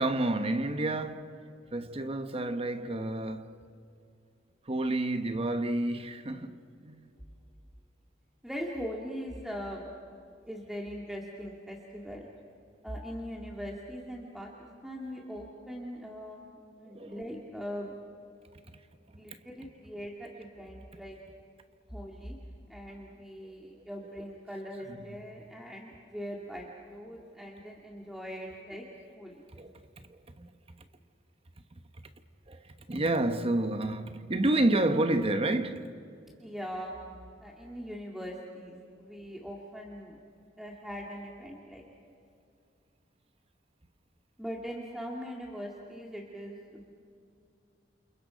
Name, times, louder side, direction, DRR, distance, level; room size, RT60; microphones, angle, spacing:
voice 1, 0.0-1.4 1.7-3.6 4.6-7.1 16.8-17.3 18.7-18.8 19.3-19.4 24.9-25.2 29.5-29.8 30.1-30.5 32.5-35.9, right 2 dB, 30° right, 1.0 m, -30 dB
voice 2, 8.4-9.9 10.5-12.3 12.8-17.9 19.1-21.2 21.9-22.3 22.7-28.8 29.2-29.4 36.4-37.0 37.4-40.2 40.6-41.9 44.4-46.9, equal, ahead, 2.1 m, -41 dB
29.0 x 29.0 x 5.1 m
head